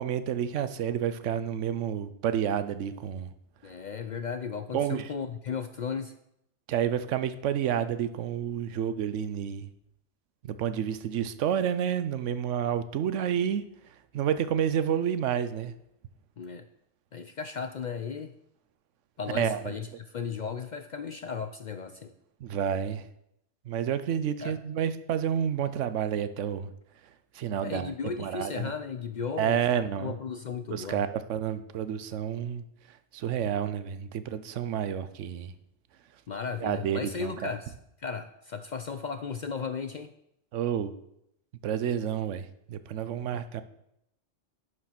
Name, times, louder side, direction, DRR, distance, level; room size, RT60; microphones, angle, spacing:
voice 1, 0.0-3.3 4.7-5.0 6.7-9.7 10.4-13.6 14.1-15.7 19.3-19.6 22.4-23.0 23.7-26.7 27.3-27.9 28.2-28.7 29.4-30.1 30.7-32.6 33.1-35.5 36.6-37.3 40.5-40.9 41.6-43.6, right 9 dB, 85° right, 1.0 m, -29 dB
voice 2, 3.6-6.1 16.4-16.7 17.1-18.4 19.2-22.1 24.4-24.6 27.6-31.0 36.3-37.7 38.0-40.1 43.3-43.4, left 6 dB, 55° left, 0.5 m, -35 dB
11.0 x 4.9 x 5.9 m
omnidirectional pair, 1.2 m